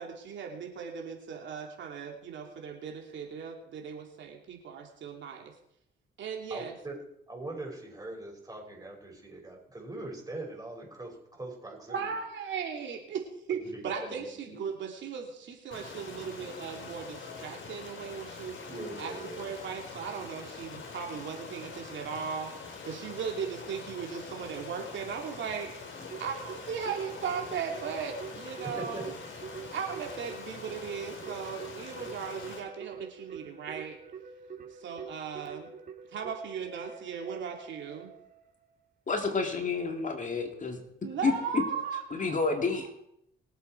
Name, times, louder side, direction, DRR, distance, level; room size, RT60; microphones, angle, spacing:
voice 1, 0.0-5.5 6.2-6.7 11.9-18.6 19.0-25.7 26.2-29.1 29.7-34.0 34.8-35.7 36.1-38.1 41.0-42.4 42.7-42.8, right 6 dB, 70° right, 2 dB, 2.9 m, -37 dB
voice 2, 6.5-7.0 7.3-12.1 13.5-14.6 18.7-19.4 28.6-29.0, right 2 dB, 20° right, 0 dB, 5.8 m, -41 dB
Stream, 15.7-32.6, left 5 dB, 70° left, 4.2 m, -44 dB
Keyboard (musical), 26.1-38.5, right 6 dB, 45° right, 2.8 m, -46 dB
voice 3, 39.1-40.8 41.2-41.6 42.1-42.9, left 4 dB, 40° left, 4 dB, 2.3 m, -29 dB
22.0 x 7.9 x 4.6 m, 0.75 s
cardioid pair, 90°, 20 cm